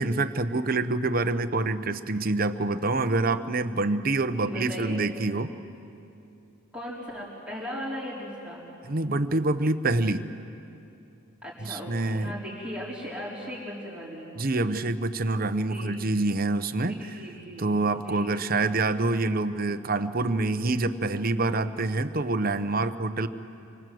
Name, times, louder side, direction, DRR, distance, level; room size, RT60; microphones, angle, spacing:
voice 1, 0.0-5.5 8.9-10.3 11.6-12.3 14.4-17.0 17.6-23.3, right 2 dB, 45° right, 10 dB, 0.9 m, -26 dB
voice 2, 4.4-5.0 6.7-8.7 11.4-14.3 15.7-16.0 16.8-17.7 18.0-18.3, equal, 5° right, -8 dB, 4.6 m, -37 dB
27.0 x 24.0 x 7.8 m, 2.7 s
head